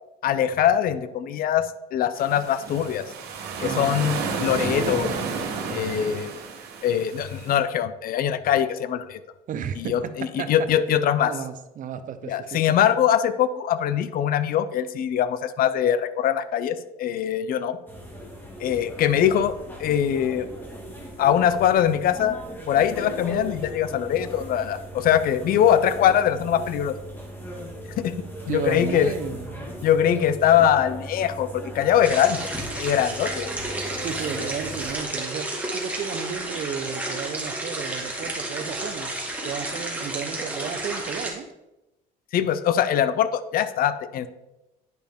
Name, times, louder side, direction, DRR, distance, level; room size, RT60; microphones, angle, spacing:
voice 1, 0.2-1.6 1.9-3.0 3.6-5.2 5.7-6.3 6.8-9.2 9.8-11.3 12.3-17.8 18.6-19.5 19.8-20.5 21.2-22.4 22.7-26.9 28.0-28.1 28.5-29.1 29.8-33.5 42.3-44.3, left 9 dB, 60° left, 14 dB, 0.5 m, -22 dB
sound 1, 2.2-7.6, right 4 dB, 75° right, 1.4 m, -31 dB
voice 2, 3.6-4.1 9.5-10.7 11.2-12.8 28.5-29.7 33.8-39.1 39.4-41.5, right 7 dB, 50° right, 11 dB, 0.6 m, -33 dB
sound 2, 17.9-35.0, equal, 10° left, 1.6 m, -38 dB
sound 3, 32.0-41.3, right 2 dB, 10° right, 1.6 m, -31 dB
9.4 x 5.1 x 3.5 m, 0.97 s
cardioid pair, 110°, 17 cm